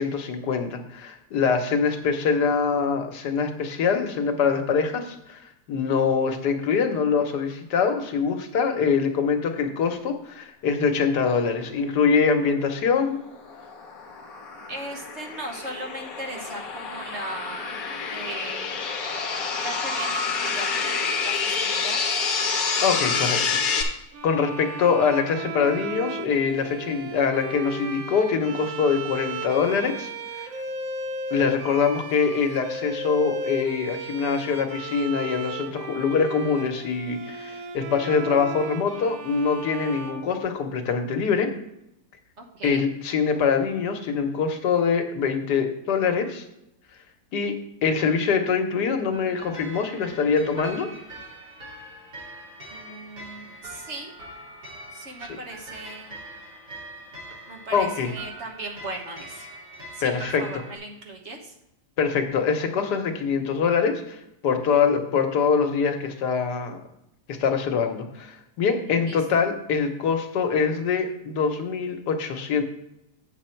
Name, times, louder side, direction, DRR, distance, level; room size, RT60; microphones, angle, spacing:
voice 1, 0.0-13.2 22.8-23.6 24.2-30.1 30.4-30.5 31.3-41.5 42.6-46.4 47.3-47.6 47.8-50.9 57.7-58.1 60.0-60.4 62.0-66.8 67.3-72.6, left 5 dB, 85° left, 5 dB, 1.6 m, -24 dB
sound 1, 13.0-23.8, left 5 dB, 60° left, 1.4 m, -28 dB
voice 2, 14.7-17.8 18.1-18.8 19.6-22.0 42.4-42.9 52.7-54.1 54.9-56.1 57.5-59.5 59.9-60.1 60.4-61.5 68.9-69.5, right 2 dB, 45° right, 2 dB, 1.4 m, -38 dB
sound 2, 24.1-41.0, right 2 dB, 65° right, 1.1 m, -35 dB
sound 3, 49.1-60.8, right 2 dB, 85° right, 3.6 m, -42 dB
8.5 x 6.7 x 4.4 m, 0.82 s
omnidirectional pair, 1.7 m